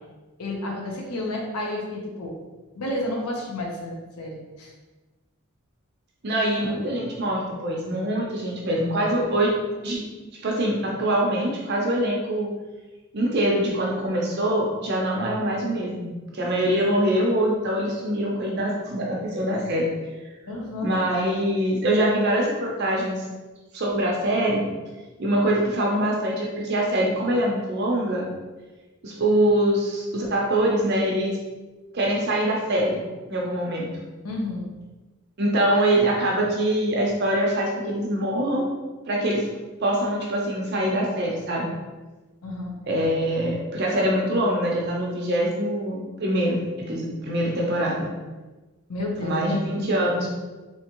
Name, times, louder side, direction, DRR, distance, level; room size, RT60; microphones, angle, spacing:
voice 1, 0.4-2.3 2.7-4.7 9.0-9.6 20.5-20.9 34.2-34.7 42.4-42.7 48.9-49.9, left 1 dB, 85° left, -1 dB, 0.8 m, -31 dB
voice 2, 6.2-9.5 9.8-10.0 10.4-12.5 13.1-19.9 20.8-23.3 23.7-24.7 25.2-28.3 29.0-31.4 31.9-33.0 33.3-33.9 35.4-38.7 39.1-39.5 39.8-41.7 42.9-48.1 49.2-50.3, right 1 dB, 45° right, -2 dB, 0.6 m, -24 dB
3.4 x 2.8 x 2.9 m, 1.2 s
head